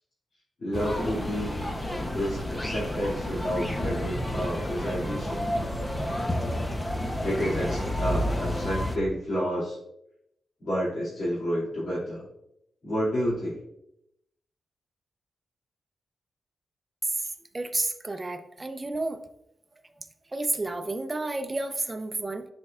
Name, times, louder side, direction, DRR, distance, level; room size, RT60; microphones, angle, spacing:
voice 1, 0.6-1.5 2.1-5.4 7.2-9.8 10.6-12.2 12.8-13.6, equal, 55° left, -10 dB, 2.4 m, -30 dB
sound 1, 0.7-9.0, equal, 15° left, 0.7 m, -30 dB
voice 2, 17.5-19.2 20.3-22.5, right 2 dB, 25° right, 8 dB, 0.6 m, -31 dB
11.0 x 4.4 x 2.4 m, 0.79 s
cardioid pair, 95°, 0 cm